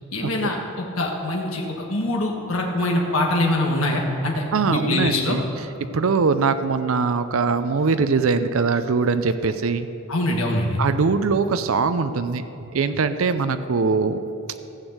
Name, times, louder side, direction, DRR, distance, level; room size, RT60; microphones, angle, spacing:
voice 1, 0.1-5.4 10.1-10.8, left 1 dB, 75° left, 0 dB, 1.5 m, -24 dB
voice 2, 4.5-5.4 5.9-9.9 10.8-12.4 12.7-14.2, right 4 dB, 70° right, 10 dB, 0.5 m, -22 dB
15.0 x 6.3 x 7.9 m, 2.8 s
head